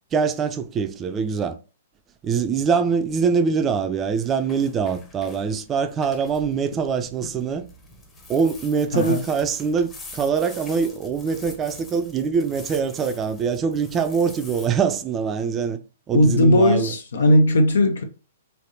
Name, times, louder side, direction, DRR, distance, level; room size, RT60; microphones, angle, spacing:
voice 1, 0.1-1.6 2.2-7.6 8.3-15.8 16.1-16.9, right 6 dB, 25° right, 0.4 m, -23 dB
sound 1, 4.2-14.7, left 2 dB, 20° left, 0.8 m, -45 dB
voice 2, 16.1-18.0, left 1 dB, 75° left, 0.6 m, -17 dB
3.3 x 2.7 x 2.6 m
hypercardioid pair, 120°, 0 cm